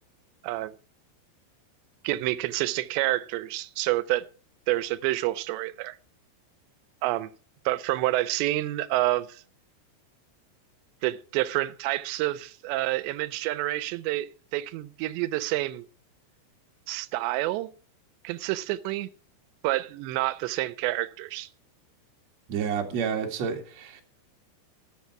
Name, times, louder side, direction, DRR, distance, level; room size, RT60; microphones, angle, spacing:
voice 1, 0.4-0.7 2.0-4.3 4.7-6.0 7.0-7.3 7.7-9.4 11.0-15.8 16.9-17.7 18.2-19.1 19.6-21.5, right 17 dB, 90° right, 2.9 m, -28 dB
voice 2, 22.5-24.0, right 7 dB, 50° right, 2.4 m, -29 dB
13.0 x 8.3 x 5.8 m
omnidirectional pair, 4.9 m